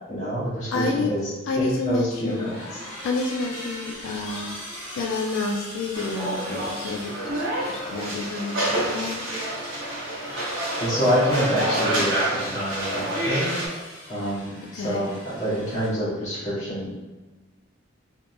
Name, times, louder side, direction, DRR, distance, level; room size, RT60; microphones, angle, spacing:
voice 1, 0.1-1.2 1.6-2.8 10.8-13.5 14.1-16.9, equal, 40° left, -10 dB, 1.4 m, -27 dB
voice 2, 0.7-1.1 1.5-2.6 3.0-9.2 14.7-15.0, left 3 dB, 85° left, 1 dB, 0.3 m, -29 dB
sound 1, 2.3-15.9, equal, 10° left, 1.2 m, -41 dB
sound 2, 5.9-13.7, right 1 dB, 85° right, 0.8 m, -28 dB
3.3 x 2.1 x 2.5 m, 1.2 s
head